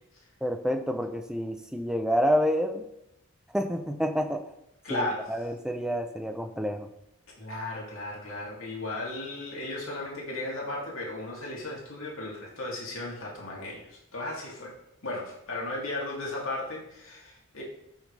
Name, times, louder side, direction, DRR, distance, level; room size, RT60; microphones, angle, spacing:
voice 1, 0.4-2.8 3.5-4.4 4.9-6.9, equal, 5° right, 6 dB, 0.6 m, -28 dB
voice 2, 4.8-5.3 7.4-14.7 15.0-17.6, left 2 dB, 70° left, -3 dB, 2.9 m, -35 dB
13.5 x 6.3 x 3.4 m, 0.83 s
head